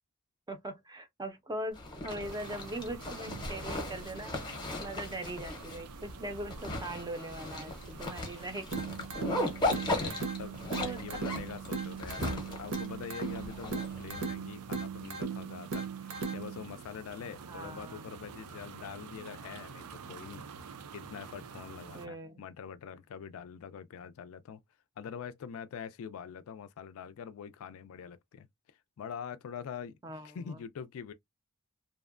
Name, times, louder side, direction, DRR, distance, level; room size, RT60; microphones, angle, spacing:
voice 1, 0.5-4.3 4.8-8.7 9.4-9.5 9.8-10.2 10.8-11.0 17.5-18.0 21.9-22.4 30.0-30.6, right 1 dB, 15° right, 0.5 m, -41 dB
Zipper (clothing), 1.7-14.2, left 2 dB, 20° left, 0.7 m, -37 dB
sound 1, 2.2-22.1, right 6 dB, 80° right, 0.4 m, -49 dB
sound 2, 8.7-16.7, right 5 dB, 65° right, 0.8 m, -38 dB
voice 2, 9.9-20.4 20.9-24.6 25.0-28.5 29.0-30.0 30.2-31.1, left 7 dB, 65° left, 0.3 m, -44 dB
2.7 x 2.1 x 2.4 m
head